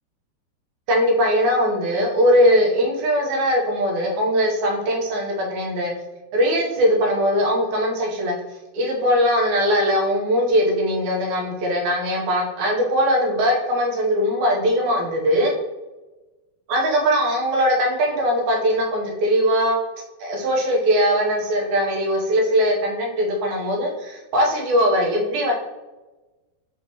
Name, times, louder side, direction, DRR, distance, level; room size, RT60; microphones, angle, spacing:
voice 1, 0.9-5.9 6.3-8.4 8.7-15.5 16.7-19.8 20.2-25.5, equal, 75° right, -2 dB, 2.3 m, -20 dB
6.1 x 2.9 x 2.8 m, 1.1 s
omnidirectional pair, 3.6 m